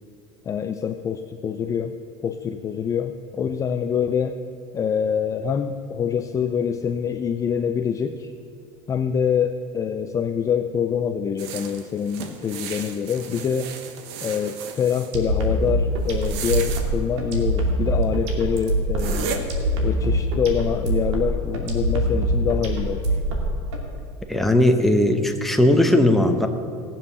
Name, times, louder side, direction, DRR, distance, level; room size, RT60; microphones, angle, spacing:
voice 1, 0.5-2.0 2.2-4.4 4.7-8.3 8.9-13.7 14.2-19.4 19.8-23.2, left 7 dB, 25° left, 8 dB, 0.4 m, -25 dB
sound 1, 11.4-15.1 16.1-16.9 18.0-18.1 18.6-18.7 19.0-19.4, right 7 dB, 70° right, 1.4 m, -34 dB
sound 2, 15.1-23.8, right 1 dB, 90° right, 2.6 m, -23 dB
voice 2, 24.3-26.5, left 1 dB, ahead, 4 dB, 0.9 m, -18 dB
17.5 x 7.4 x 6.9 m, 2.6 s
supercardioid pair, 140°, 14 cm